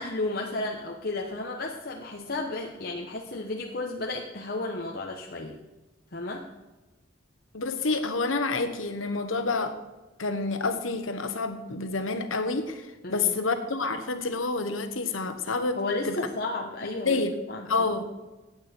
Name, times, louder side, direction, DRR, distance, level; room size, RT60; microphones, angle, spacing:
voice 1, 0.0-5.6 6.1-6.5 13.0-13.2 15.8-18.0, left 2 dB, 50° left, 0 dB, 1.1 m, -33 dB
voice 2, 7.5-9.8 10.2-15.8 16.0-16.3 17.0-17.3 17.7-18.1, left 3 dB, 85° left, 8 dB, 1.3 m, -28 dB
15.5 x 8.7 x 4.4 m, 1.1 s
head